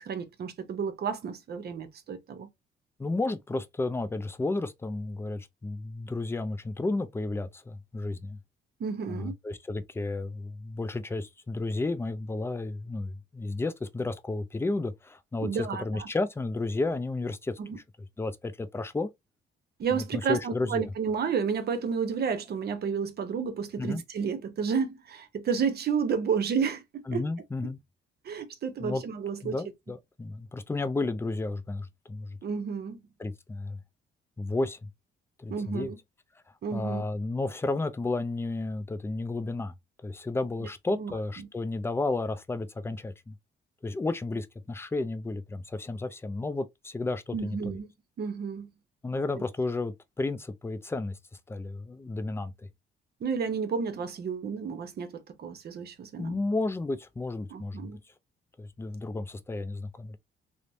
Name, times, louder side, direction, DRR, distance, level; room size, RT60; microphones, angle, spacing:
voice 1, 0.0-2.5 8.8-9.3 15.4-16.1 17.6-17.8 19.8-27.2 28.2-29.6 32.4-33.0 35.5-36.0 36.6-37.1 40.6-41.5 47.3-47.9 48.2-48.7 53.2-56.4 57.5-58.0, right 6 dB, 55° right, 0.7 m, -31 dB
voice 2, 3.0-8.4 9.1-17.6 18.2-19.1 19.9-20.9 23.8-24.0 27.1-27.8 28.8-29.0 29.4-32.4 33.2-33.8 34.4-34.9 35.4-35.9 36.7-39.7 40.0-43.3 43.8-47.6 49.0-51.2 51.5-52.5 56.2-57.9 58.6-60.2, left 2 dB, 10° left, 0.4 m, -32 dB
3.1 x 2.0 x 2.6 m
cardioid pair, 90°, 20 cm